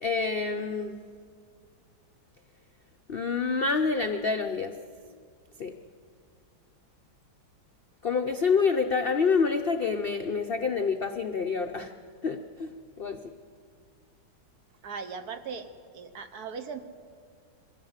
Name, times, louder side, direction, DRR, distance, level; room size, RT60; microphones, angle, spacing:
voice 1, 0.0-0.9 3.1-4.7 5.6-5.7 8.0-11.9 12.2-13.2, left 5 dB, 80° left, 5 dB, 0.5 m, -27 dB
voice 2, 14.8-16.8, right 5 dB, 60° right, 8 dB, 1.4 m, -39 dB
22.0 x 15.5 x 8.0 m, 2.1 s
omnidirectional pair, 2.0 m